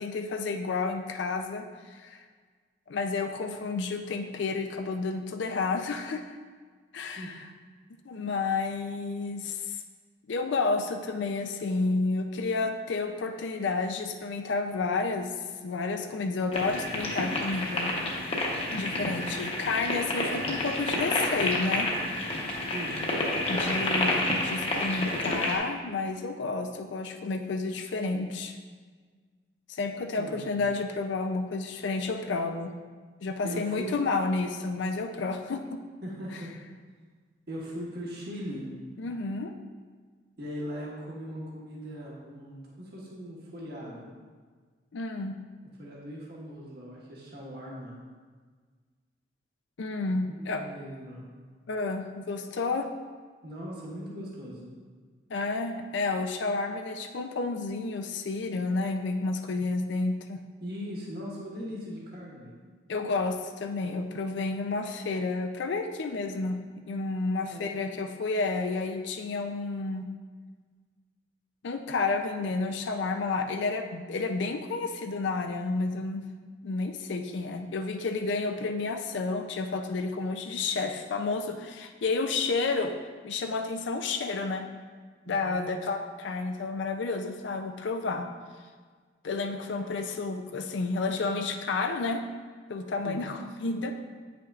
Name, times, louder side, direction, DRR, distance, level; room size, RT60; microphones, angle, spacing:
voice 1, 0.0-2.2 2.9-6.4 6.9-7.5 8.1-9.8 10.3-15.3 15.6-17.9 18.7-21.9 23.5-28.6 29.7-32.7 33.2-35.8 39.0-39.5 44.9-45.4 49.8-50.6 51.7-52.9 55.3-60.4 62.9-66.6 66.9-70.1 71.6-76.2 76.6-82.9 83.2-84.6 85.3-88.3 89.2-92.3 92.7-93.9, left 3 dB, 70° left, 5 dB, 0.4 m, -31 dB
sound 1, 16.5-25.6, left 1 dB, 30° left, 0.9 m, -29 dB
voice 2, 19.0-19.3 22.7-23.0 30.2-30.5 33.4-33.9 36.0-36.5 37.5-38.7 40.4-44.1 45.8-48.0 50.3-51.3 53.4-54.7 60.6-62.5 67.3-67.8 85.2-85.7 93.0-93.2, equal, 55° right, -5 dB, 1.3 m, -39 dB
8.8 x 5.8 x 2.4 m, 1.5 s
head